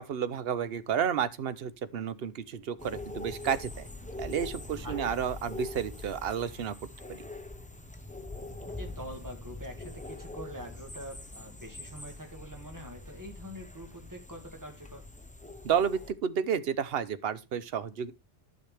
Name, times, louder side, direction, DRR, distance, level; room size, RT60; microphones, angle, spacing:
voice 1, 0.0-3.9 4.2-6.7 7.1-7.2 15.6-18.1, right 8 dB, 65° right, 0.9 m, -31 dB
sound 1, 2.8-16.1, left 2 dB, 10° left, 0.8 m, -43 dB
voice 2, 8.8-15.0, equal, 15° right, 2.0 m, -44 dB
12.0 x 6.3 x 3.4 m
omnidirectional pair, 1.1 m